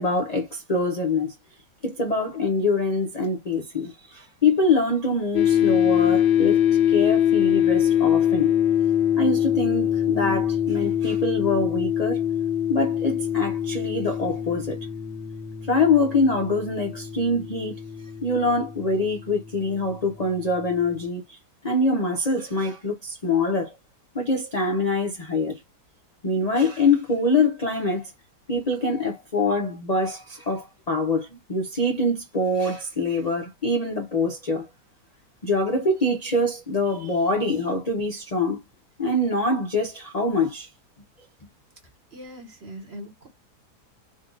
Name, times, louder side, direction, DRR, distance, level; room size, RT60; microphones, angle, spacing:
voice 1, 0.0-1.3 1.8-6.6 6.9-8.5 9.2-12.2 12.7-14.8 15.7-17.8 18.2-21.4 21.6-23.7 24.1-25.6 26.2-28.1 28.5-34.7 35.4-38.6 39.0-40.7, left 2 dB, 40° left, 0.6 m, -24 dB
sound 1, 5.3-20.6, left 10 dB, 75° left, 1.2 m, -24 dB
voice 2, 42.1-43.3, equal, 45° right, 1.2 m, -41 dB
3.8 x 2.3 x 3.8 m
omnidirectional pair, 1.8 m